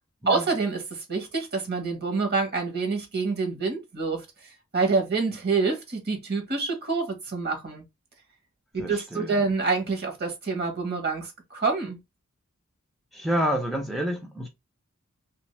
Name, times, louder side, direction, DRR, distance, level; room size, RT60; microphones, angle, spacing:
voice 1, 0.3-4.2 4.7-7.8 8.7-12.0, right 4 dB, 50° right, 1.2 m, -27 dB
voice 2, 8.8-9.5 13.1-14.5, equal, ahead, 0.5 m, -29 dB
2.9 x 2.6 x 3.1 m
head